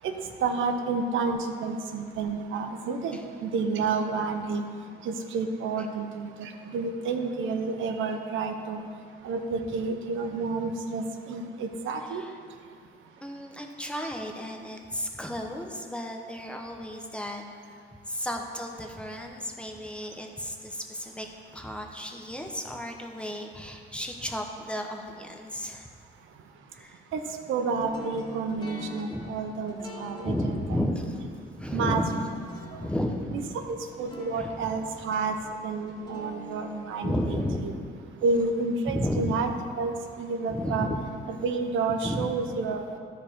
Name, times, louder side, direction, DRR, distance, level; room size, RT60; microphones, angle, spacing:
voice 1, 0.4-4.6 5.0-8.8 9.2-12.2 27.1-27.2 27.5-30.9 31.7-32.0 32.7-32.8 33.3-35.4 35.6-37.7 38.2-39.5 39.8-40.9 41.3-43.0, right 4 dB, 80° right, 6 dB, 0.7 m, -30 dB
voice 2, 13.2-17.4 18.1-21.3 21.5-25.9 26.7-27.0 29.1-29.2 30.2-31.2 31.6-32.1 32.8-33.7 34.4-34.7 37.0-37.6 38.9-39.5 40.5-41.0 42.0-42.3, left 1 dB, 5° left, 2 dB, 0.9 m, -33 dB
sound 1, 27.8-38.8, left 2 dB, 20° left, 1.9 m, -46 dB
12.5 x 5.1 x 4.4 m, 2.2 s
cardioid pair, 90°, 20 cm